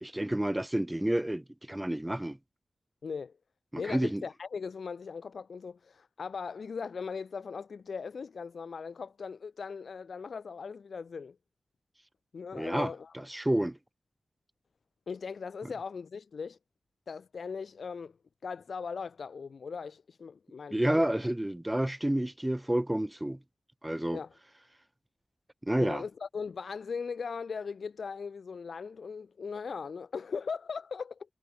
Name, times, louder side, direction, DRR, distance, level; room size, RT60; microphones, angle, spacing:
voice 1, 0.0-2.4 3.7-4.2 12.5-12.9 13.3-13.8 20.7-23.4 23.8-24.2 25.6-26.0, right 1 dB, 10° right, 4.0 m, -29 dB
voice 2, 3.0-3.4 3.8-11.4 12.3-13.1 15.1-16.6 17.1-18.1 18.4-21.1 24.1-24.3 25.8-31.3, left 5 dB, 70° left, 6.7 m, -39 dB
wide cardioid pair, 130°, 0 cm